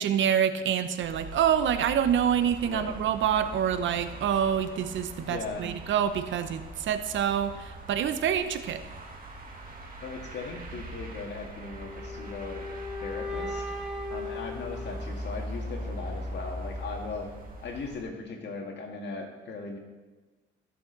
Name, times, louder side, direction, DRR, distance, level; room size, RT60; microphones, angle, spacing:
voice 1, 0.0-8.8, right 9 dB, 75° right, 10 dB, 0.8 m, -26 dB
sound 1, 1.0-18.0, equal, 45° right, 2.1 m, -41 dB
voice 2, 2.6-3.0 5.2-5.8 10.0-12.7 13.0-13.7 14.1-17.3 17.6-19.8, left 4 dB, 60° left, 2 dB, 2.0 m, -38 dB
sound 2, 11.6-15.6, left 2 dB, ahead, 2.8 m, -38 dB
15.0 x 6.5 x 4.0 m, 1.2 s
cardioid pair, 90°, 20 cm